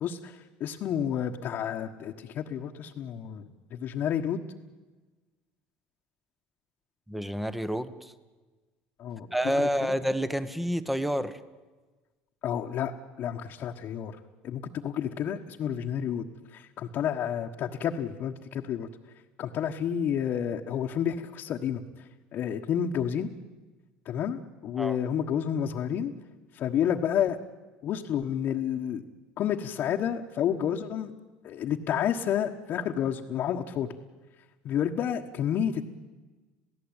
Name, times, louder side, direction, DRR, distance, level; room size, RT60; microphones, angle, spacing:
voice 1, 0.0-4.4 9.0-9.3 9.6-9.9 12.4-12.9 13.2-14.2 14.4-16.2 16.5-18.9 19.4-23.3 24.0-26.1 26.5-27.4 27.8-29.0 29.4-31.1 31.4-33.9 34.6-35.9, left 9 dB, 50° left, 0 dB, 1.4 m, -30 dB
voice 2, 7.1-8.1 9.3-11.4 24.8-25.0, equal, 5° right, 12 dB, 1.3 m, -29 dB
27.5 x 17.0 x 9.0 m, 1.3 s
supercardioid pair, 105°, 4 cm